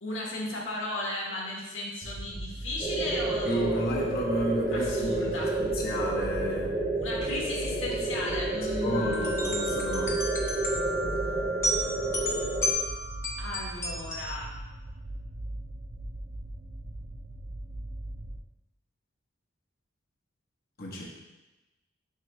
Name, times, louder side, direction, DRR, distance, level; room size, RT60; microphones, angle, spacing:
voice 1, 0.0-3.9 4.7-5.6 6.9-9.6 13.4-14.6, left 1 dB, 80° left, -3 dB, 1.6 m, -35 dB
sound 1, 2.0-18.4, right 1 dB, 55° right, 0.5 m, -40 dB
sound 2, 2.8-12.7, right 2 dB, 20° right, 1.4 m, -30 dB
voice 2, 3.5-6.7 8.8-10.3 20.8-21.1, equal, 50° left, -3 dB, 1.0 m, -32 dB
sound 3, 8.9-14.3, equal, 15° left, 0.8 m, -33 dB
6.3 x 3.0 x 5.4 m, 1.1 s
head